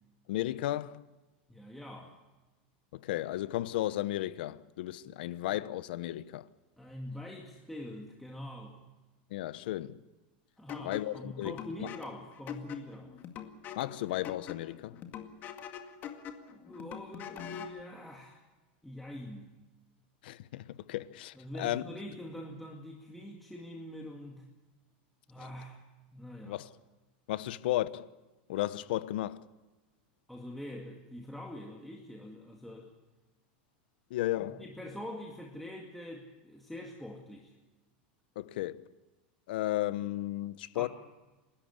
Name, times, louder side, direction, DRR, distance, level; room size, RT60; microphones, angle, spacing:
voice 1, 0.3-1.0 2.9-6.4 9.3-9.9 10.8-11.5 13.8-15.0 20.2-21.8 26.5-26.7 27.3-28.1 28.5-29.4 34.1-34.6 38.4-38.8 39.5-40.9, left 15 dB, 75° left, 1.0 m, -34 dB
voice 2, 1.5-2.2 6.8-8.8 10.6-13.1 16.5-18.4 18.8-19.5 21.3-24.5 25.3-25.8 26.1-26.6 30.3-32.9 34.4-37.5 40.7-40.9, left 1 dB, 5° left, 2.2 m, -44 dB
sound 1, 10.7-17.8, left 8 dB, 40° left, 2.1 m, -44 dB
30.0 x 13.0 x 8.2 m
supercardioid pair, 140°, 5 cm